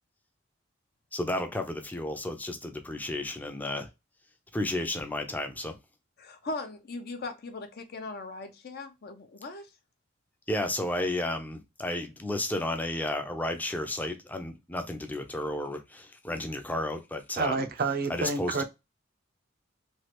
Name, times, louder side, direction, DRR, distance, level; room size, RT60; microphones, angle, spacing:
voice 1, 1.1-3.9 4.5-5.8 10.5-17.7 18.1-18.6, left 1 dB, 10° left, 0.5 m, -32 dB
voice 2, 6.2-9.7, left 3 dB, 55° left, 0.6 m, -39 dB
voice 3, 17.4-18.6, right 4 dB, 50° right, 0.5 m, -29 dB
3.1 x 2.4 x 2.8 m
head